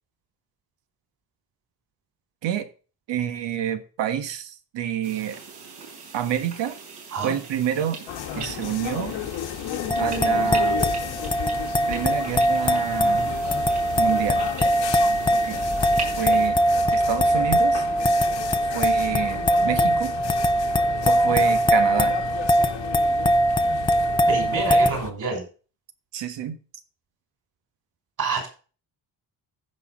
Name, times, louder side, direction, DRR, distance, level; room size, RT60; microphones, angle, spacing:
voice 1, 3.1-5.4 6.1-6.8 7.2-8.0 8.3-9.1 10.0-10.8 11.9-13.3 14.0-14.4 15.3-15.6 16.2-16.6 16.9-17.9 18.7-20.1 21.1-22.2 26.1-26.6, right 10 dB, 80° right, 1.5 m, -28 dB
sound 1, 5.0-16.5, right 5 dB, 65° right, 5.4 m, -40 dB
sound 2, 8.1-25.1, left 10 dB, 85° left, 1.6 m, -34 dB
sound 3, 9.9-24.9, equal, 10° left, 0.5 m, -21 dB
voice 2, 24.3-25.4 28.2-28.5, right 4 dB, 45° right, 5.6 m, -27 dB
15.5 x 5.7 x 3.7 m
cardioid pair, 160°, 43 cm